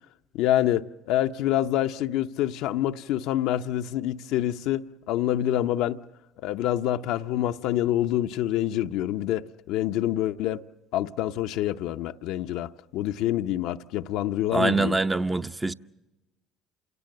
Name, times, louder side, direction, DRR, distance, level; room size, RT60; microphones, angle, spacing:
voice 1, 0.3-6.0 6.4-10.6 10.9-15.0, left 12 dB, 70° left, 0.7 m, -26 dB
voice 2, 14.5-15.7, right 3 dB, 15° right, 0.8 m, -24 dB
28.5 x 18.0 x 7.7 m
hypercardioid pair, 70°, 0 cm